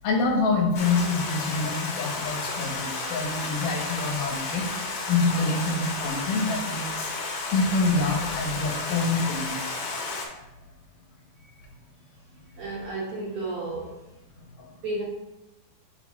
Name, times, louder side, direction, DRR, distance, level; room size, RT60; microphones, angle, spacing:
voice 1, 0.0-7.1 7.5-9.6 14.6-14.7, left 3 dB, 80° left, 0 dB, 2.8 m, -26 dB
Stream, 0.7-10.2, left 3 dB, 60° left, 1.8 m, -32 dB
voice 2, 12.5-14.2 14.7-15.0, right 2 dB, 65° right, -4 dB, 1.3 m, -33 dB
7.7 x 3.1 x 4.6 m, 0.95 s
omnidirectional pair, 3.7 m